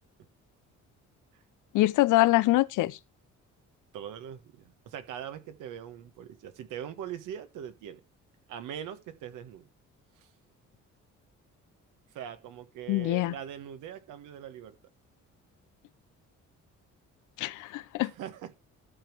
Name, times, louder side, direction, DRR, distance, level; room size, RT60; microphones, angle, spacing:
voice 1, 1.7-3.0 12.9-13.3 17.4-18.1, left 17 dB, 90° left, 0.6 m, -24 dB
voice 2, 3.9-8.0 8.5-9.7 10.2-10.3 12.1-14.8 18.0-18.5, right 9 dB, 90° right, 1.4 m, -41 dB
13.0 x 5.4 x 4.5 m
cardioid pair, 90°, 30 cm